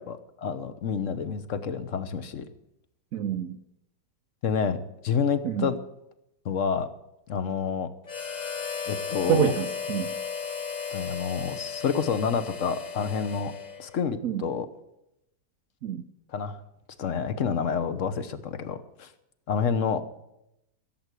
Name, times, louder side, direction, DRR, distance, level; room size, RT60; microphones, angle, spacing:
voice 1, 0.0-2.4 4.4-4.8 5.0-5.8 6.4-6.9 7.3-7.9 8.9-9.5 10.9-13.5 13.8-14.7 16.3-16.6 17.0-19.1 19.5-20.0, left 6 dB, 50° left, 12 dB, 1.2 m, -28 dB
voice 2, 3.1-3.6 5.4-5.7 9.3-10.1 14.2-14.4 15.8-16.0, right 9 dB, 65° right, 8 dB, 0.9 m, -27 dB
Harmonica, 8.1-14.1, left 6 dB, 35° left, 0.8 m, -35 dB
16.0 x 7.9 x 8.2 m, 0.85 s
omnidirectional pair, 2.0 m